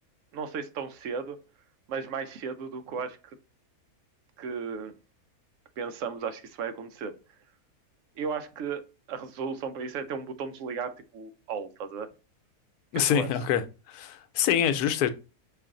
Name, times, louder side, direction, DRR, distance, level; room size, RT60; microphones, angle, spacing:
voice 1, 0.3-1.4 1.9-3.2 4.4-4.9 5.8-7.2 8.2-12.1 12.9-13.3, right 6 dB, 65° right, 0.9 m, -35 dB
voice 2, 12.9-13.6 13.9-15.1, left 9 dB, 90° left, 1.1 m, -25 dB
5.2 x 2.5 x 3.7 m
omnidirectional pair, 1.6 m